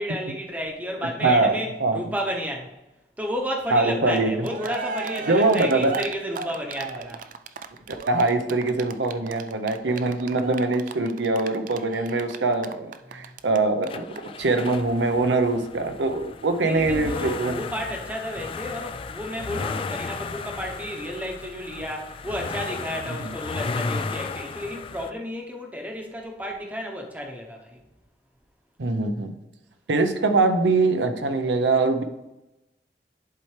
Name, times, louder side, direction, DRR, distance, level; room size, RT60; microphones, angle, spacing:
voice 1, 0.0-2.7 3.2-7.2 13.1-13.3 16.6-27.8, equal, 10° right, 1 dB, 0.8 m, -32 dB
voice 2, 1.2-2.0 3.7-4.4 5.3-5.9 8.1-17.6 23.2-23.3 28.8-29.3 29.9-32.0, right 3 dB, 90° right, 7 dB, 0.7 m, -23 dB
Cheering, 4.2-4.3 4.4-13.6 13.8-13.9 14.1-14.2, right 5 dB, 45° right, 0.4 m, -35 dB
sound 1, 13.9-25.1, left 4 dB, 30° left, 0.3 m, -34 dB
11.0 x 4.3 x 3.2 m, 0.98 s
head